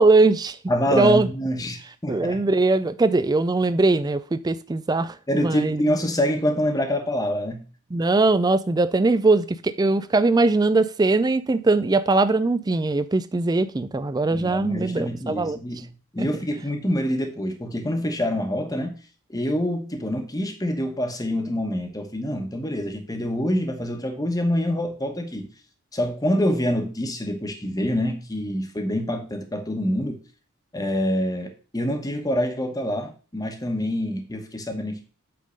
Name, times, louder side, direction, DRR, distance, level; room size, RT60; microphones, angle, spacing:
voice 1, 0.0-0.6 0.9-1.3 2.1-5.8 7.9-15.6 16.2-16.3, right 3 dB, 15° right, 12 dB, 0.3 m, -21 dB
voice 2, 0.7-2.4 5.3-7.7 14.3-19.0 19.3-25.5 25.9-30.2 30.7-35.0, equal, 15° left, 5 dB, 1.1 m, -26 dB
8.5 x 3.7 x 5.1 m, 0.37 s
head